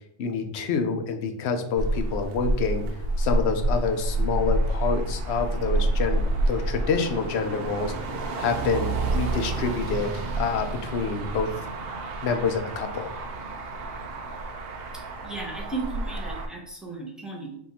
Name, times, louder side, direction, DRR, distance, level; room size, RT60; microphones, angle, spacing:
voice 1, 0.2-2.8 3.2-8.1 8.4-11.5 12.2-13.1, left 5 dB, 70° left, 6 dB, 0.9 m, -27 dB
Motor vehicle (road), 1.8-16.5, right 2 dB, 65° right, 0.7 m, -28 dB
voice 2, 15.2-17.6, right 3 dB, ahead, -2 dB, 0.7 m, -35 dB
4.5 x 2.6 x 4.1 m, 0.74 s
omnidirectional pair, 1.2 m